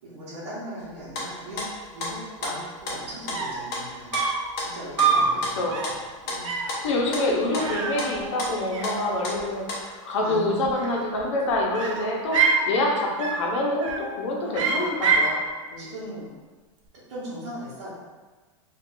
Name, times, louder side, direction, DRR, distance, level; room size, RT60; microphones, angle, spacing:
voice 1, 0.0-1.6 1.9-4.2 4.6-6.0 6.2-6.5 10.2-10.5 13.2-13.3 14.4-14.9 15.8-16.3 17.1-17.9, equal, 55° right, -10 dB, 0.9 m, -38 dB
sound 1, 0.8-9.8, left 2 dB, 35° left, 0.7 m, -33 dB
sound 2, 3.1-3.2 3.3-3.7 4.1-4.5 5.0-5.3 5.7-6.0 6.4-6.8 7.6-8.5 8.7-9.4 10.6-11.3 11.7-12.7 13.2-13.5 13.8-14.2 14.5-15.4, right 5 dB, 80° right, 0.5 m, -25 dB
voice 2, 5.1-5.8 6.8-12.4 12.7-15.4 15.7-15.9, left 1 dB, 70° left, -1 dB, 0.8 m, -26 dB
2.4 x 2.4 x 3.7 m, 1.4 s
supercardioid pair, 165°, 16 cm